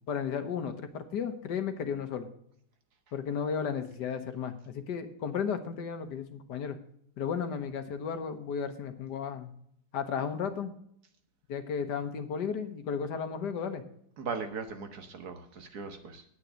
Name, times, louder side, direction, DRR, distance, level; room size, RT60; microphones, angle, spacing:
voice 1, 0.1-2.3 3.1-6.8 7.2-9.5 9.9-10.7 11.5-13.8, left 6 dB, 70° left, 9 dB, 1.7 m, -34 dB
voice 2, 14.2-16.2, right 5 dB, 60° right, 7 dB, 1.8 m, -38 dB
9.7 x 8.4 x 6.3 m, 0.68 s
omnidirectional pair, 1.9 m